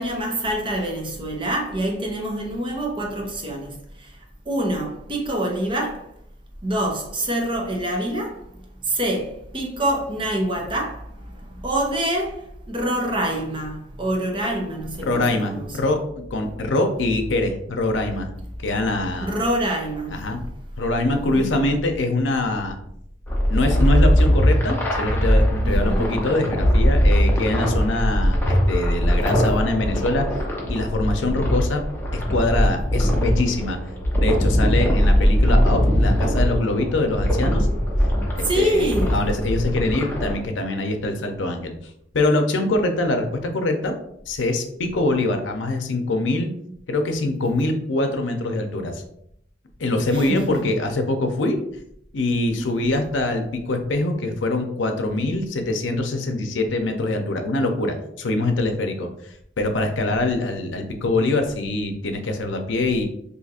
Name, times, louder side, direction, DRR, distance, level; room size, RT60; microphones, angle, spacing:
voice 1, 0.0-4.2 4.5-6.1 6.6-8.5 8.8-15.7 19.2-20.3 21.3-21.7 25.6-26.1 38.4-39.2 50.1-50.6 52.6-53.0, right 1 dB, 25° right, 0.7 m, -26 dB
voice 2, 15.1-16.0 16.3-18.3 18.6-19.3 20.1-20.4 20.8-22.8 23.5-30.4 30.7-31.8 32.1-33.8 34.2-37.7 38.3-41.7 42.1-43.3 43.5-43.9 44.3-46.5 46.9-49.0 49.8-51.6 52.1-59.1 59.6-63.0, left 2 dB, 85° left, 0.6 m, -23 dB
sound 1, 23.3-40.4, equal, 10° left, 0.6 m, -20 dB
2.7 x 2.4 x 4.1 m
head